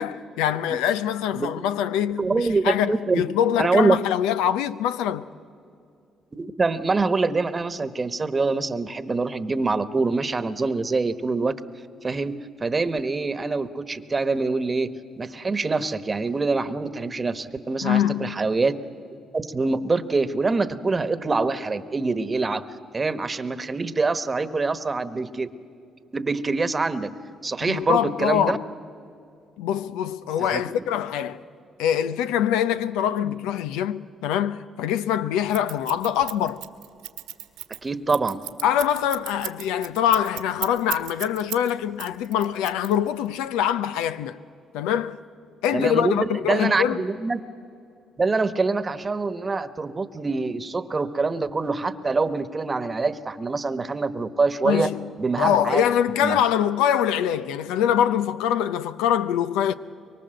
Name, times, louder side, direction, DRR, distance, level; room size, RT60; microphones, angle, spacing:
voice 1, 0.0-5.2 17.8-18.5 27.6-28.6 29.6-31.4 31.8-36.6 38.6-44.4 44.7-45.2 45.6-47.0 54.6-55.1 55.4-59.7, left 10 dB, 90° left, 0.6 m, -24 dB
voice 2, 1.3-1.6 2.2-3.2 3.6-4.0 6.3-11.5 12.0-14.9 15.2-18.8 19.3-22.6 22.9-25.5 26.1-27.1 27.4-28.6 30.5-30.7 37.8-38.4 45.7-47.4 48.2-54.9 55.2-55.8 56.2-56.4, right 3 dB, 30° right, 1.2 m, -25 dB
Scissors, 35.5-41.7 42.0-43.3, right 14 dB, 90° right, 1.7 m, -34 dB
24.0 x 23.5 x 7.8 m
supercardioid pair, 70°, 0 cm